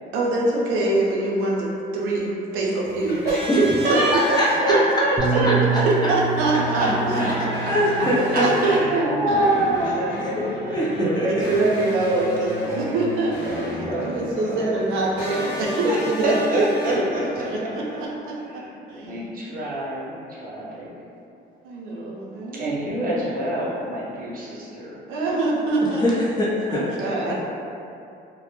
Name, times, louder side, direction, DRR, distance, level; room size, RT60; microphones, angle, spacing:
voice 1, 0.1-3.2 3.6-4.0 4.7-4.8 5.3-5.6 5.9-7.5 8.4-9.5 10.6-13.4 13.8-16.7 16.9-18.6 18.9-19.2 21.6-23.0 25.1-26.1 26.7-27.4, right 2 dB, 85° right, -4 dB, 0.4 m, -24 dB
sound 1, 2.8-18.1, left 1 dB, 55° left, 0.8 m, -34 dB
voice 2, 3.2-6.1 6.4-7.7 8.3-10.6 11.1-11.2 11.8-12.3 12.6-13.0 13.4-14.7 15.8-17.2 17.6-18.0 18.5-21.0 22.5-25.0, right 1 dB, 45° right, -7 dB, 0.8 m, -27 dB
voice 3, 4.1-4.8 5.4-5.8 6.8-7.3 7.7-8.5 10.3-10.4 10.7-11.5 26.0-27.3, left 1 dB, 20° left, -7 dB, 0.6 m, -23 dB
Bass guitar, 5.2-9.7 10.5-11.4, right 6 dB, 25° right, 0.3 m, -29 dB
2.1 x 2.0 x 3.0 m, 2.6 s
cardioid pair, 95°, 21 cm